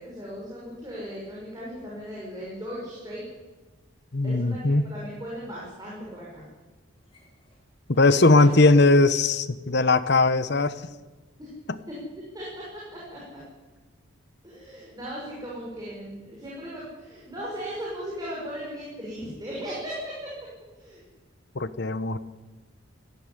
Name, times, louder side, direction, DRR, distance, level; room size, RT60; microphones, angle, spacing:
voice 1, 0.0-3.2 4.2-6.5 11.4-11.5 11.9-12.0 12.3-13.4 14.4-20.3 20.7-21.0, equal, 20° right, -5 dB, 5.9 m, -37 dB
voice 2, 4.1-4.8 7.9-10.7 11.7-11.8 21.5-22.2, left 2 dB, 50° left, 14 dB, 1.0 m, -19 dB
sound 1, 7.0-11.7 12.0-14.0, left 1 dB, 25° left, 5.3 m, -48 dB
18.5 x 14.5 x 10.0 m, 1.2 s
head